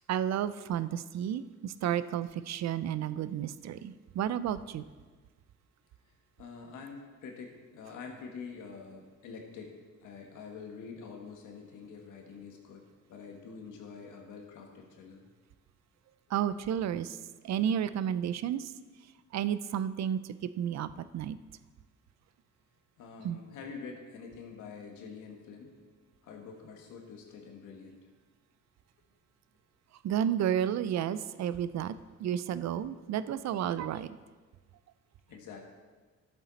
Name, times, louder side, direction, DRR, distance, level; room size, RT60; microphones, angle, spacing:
voice 1, 0.1-4.8 16.3-17.2 17.4-18.7 19.3-21.4 23.2-23.4 30.0-31.9 32.2-34.2, right 9 dB, 60° right, 15 dB, 0.5 m, -32 dB
voice 2, 6.4-12.8 13.1-15.2 23.0-25.7 26.2-28.1 31.8-31.9 35.3-35.6, left 5 dB, 80° left, 1 dB, 1.7 m, -46 dB
12.0 x 7.3 x 4.1 m, 1.4 s
cardioid pair, 90°, 30 cm